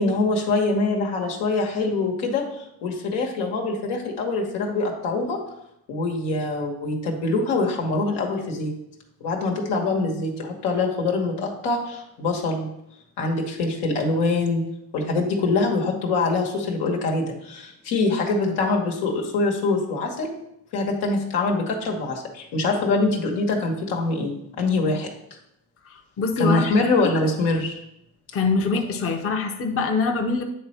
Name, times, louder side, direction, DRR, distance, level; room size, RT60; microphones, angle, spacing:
voice 1, 0.0-5.4 5.9-8.7 9.2-12.7 13.2-14.6 14.9-20.3 20.7-25.1 26.4-27.8, left 3 dB, 85° left, 0 dB, 1.3 m, -24 dB
voice 2, 25.9-26.7 28.3-30.4, left 4 dB, 35° left, 4 dB, 0.8 m, -24 dB
8.6 x 3.3 x 4.2 m, 0.81 s
supercardioid pair, 80°, 40 cm